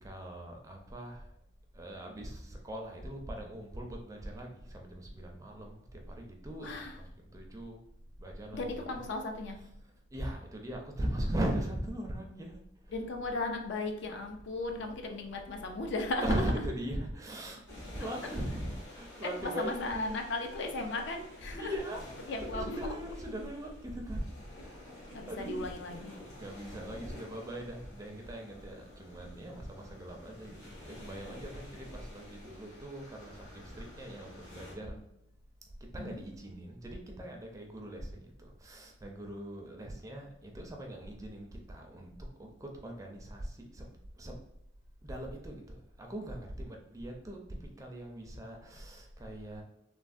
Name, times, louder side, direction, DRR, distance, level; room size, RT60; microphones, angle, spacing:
voice 1, 0.0-1.2 1.7-7.8 8.2-9.1 9.6-9.7 10.1-12.6 12.9-13.3 16.2-17.6 17.9-20.2 21.6-24.3 24.6-24.9 25.3-25.6 26.3-35.0 35.9-42.1 42.4-43.9 44.2-44.4 45.0-47.4 47.8-49.6, right 1 dB, 15° right, 1 dB, 0.4 m, -40 dB
voice 2, 6.6-7.0 8.5-9.6 12.9-16.7 18.0-18.1 19.2-21.8 22.3-22.9 25.1-26.2 36.0-36.2, left 2 dB, 65° left, 4 dB, 0.4 m, -36 dB
sound 1, 17.7-34.7, left 1 dB, 80° left, 1.3 m, -50 dB
3.2 x 2.1 x 2.5 m, 0.78 s
head